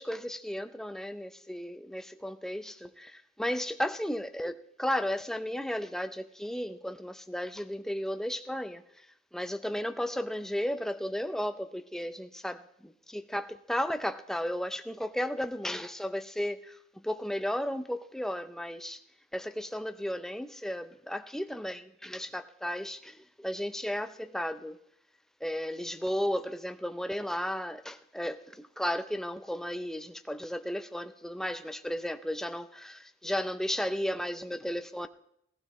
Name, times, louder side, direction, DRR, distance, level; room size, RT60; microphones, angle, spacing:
voice 1, 0.0-8.8 9.3-16.8 17.0-19.0 19.3-24.8 25.4-35.1, equal, ahead, 0.5 m, -34 dB
19.0 x 15.0 x 3.1 m
head